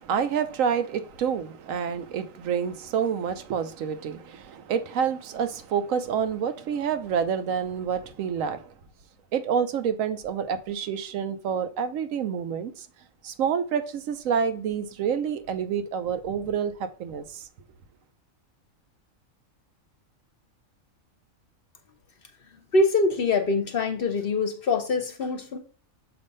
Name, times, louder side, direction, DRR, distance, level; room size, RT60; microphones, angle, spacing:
voice 1, 0.0-8.7 9.3-12.9 13.2-17.5, right 7 dB, 80° right, 1.0 m, -28 dB
voice 2, 22.7-25.6, left 3 dB, 55° left, 0.7 m, -24 dB
6.8 x 2.6 x 5.3 m
omnidirectional pair, 1.4 m